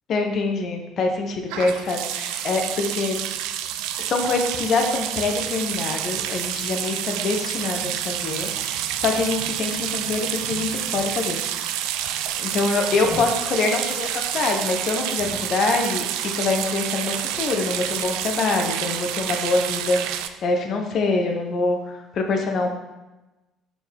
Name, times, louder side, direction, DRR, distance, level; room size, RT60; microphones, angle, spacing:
voice 1, 0.1-3.2 4.0-11.4 12.4-22.7, left 3 dB, 50° left, 3 dB, 0.9 m, -25 dB
sound 1, 1.5-20.3, right 11 dB, 65° right, 0.3 m, -28 dB
sound 2, 12.8-13.4 15.2-15.8 16.2-16.3, equal, 85° left, 2.5 m, -39 dB
6.1 x 6.0 x 3.5 m, 1.1 s
figure-of-eight pair, 50°, 0 cm